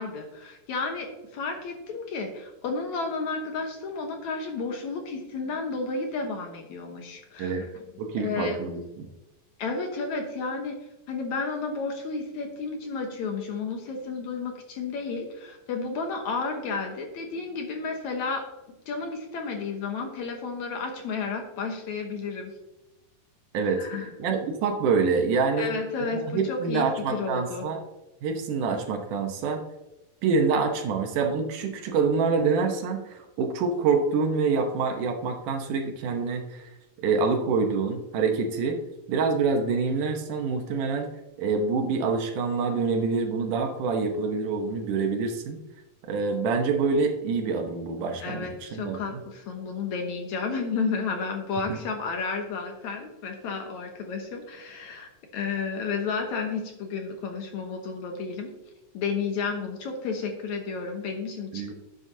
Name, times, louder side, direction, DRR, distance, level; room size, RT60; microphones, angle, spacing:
voice 1, 0.0-7.6 8.2-8.6 9.6-10.8 11.1-18.4 18.9-22.5 23.8-24.1 25.6-27.7 48.2-58.5 58.9-61.7, left 4 dB, 65° left, 3 dB, 2.1 m, -32 dB
voice 2, 8.0-9.1 23.5-23.9 24.2-25.7 26.1-27.8 28.2-29.6 30.2-36.7 37.0-38.8 39.1-41.1 41.4-45.6 46.0-49.2 51.7-51.8 61.5-61.7, right 4 dB, 70° right, 4 dB, 2.4 m, -26 dB
11.0 x 8.1 x 2.7 m, 1.0 s
omnidirectional pair, 4.0 m